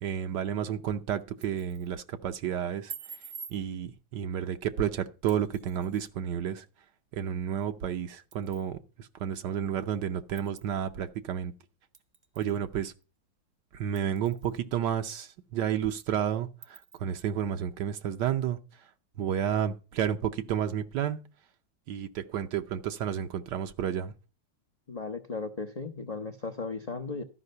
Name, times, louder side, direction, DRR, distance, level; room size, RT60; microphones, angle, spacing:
voice 1, 0.0-2.9 3.5-6.6 7.1-11.5 12.4-12.9 13.7-18.6 19.2-21.2 21.9-24.1, right 9 dB, 75° right, 1.3 m, -31 dB
sound 1, 1.2-1.9 2.9-3.6 5.3-6.1 7.6-7.7 8.3-8.7 9.3-9.4 10.4-10.7 11.9-12.6 13.0-13.1 14.0-14.6 15.1-15.2 15.6-15.7 16.6-17.0, right 6 dB, 40° right, 0.8 m, -46 dB
voice 2, 24.9-27.2, left 3 dB, 60° left, 0.4 m, -36 dB
12.5 x 5.2 x 6.6 m
omnidirectional pair, 1.9 m